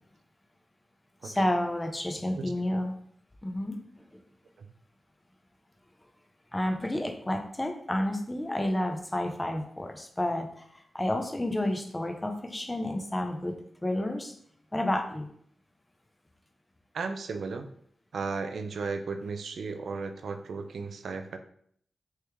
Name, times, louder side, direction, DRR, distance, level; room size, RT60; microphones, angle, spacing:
voice 1, 1.2-2.9 3.4-3.8 4.1-4.2 6.5-14.3 14.7-15.3, left 1 dB, 20° left, 5 dB, 0.7 m, -30 dB
voice 2, 16.9-17.7 18.1-21.4, right 4 dB, 75° right, 7 dB, 0.3 m, -35 dB
3.2 x 3.0 x 3.4 m, 0.64 s
supercardioid pair, 45°, 0 cm